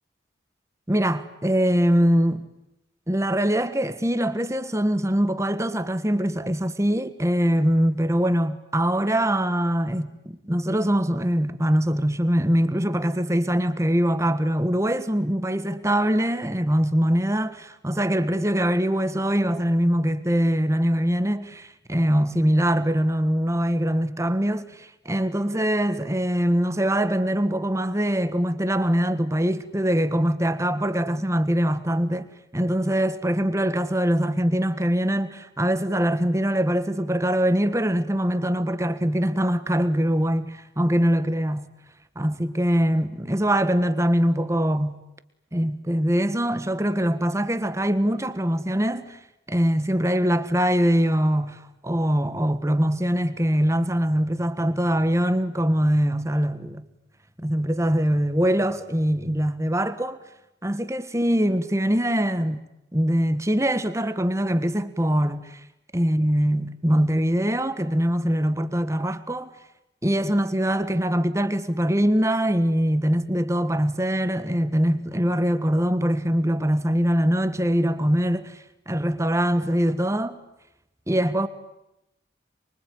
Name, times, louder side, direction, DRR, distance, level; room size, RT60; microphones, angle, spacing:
voice 1, 0.9-2.4 3.1-32.3 32.5-41.7 42.1-45.0 45.5-49.2 49.5-56.9 57.4-60.2 60.6-62.6 62.9-65.6 65.9-69.5 70.0-78.6 78.9-80.4 81.1-81.5, equal, 15° right, 1.4 m, -23 dB
25.5 x 24.0 x 9.4 m
head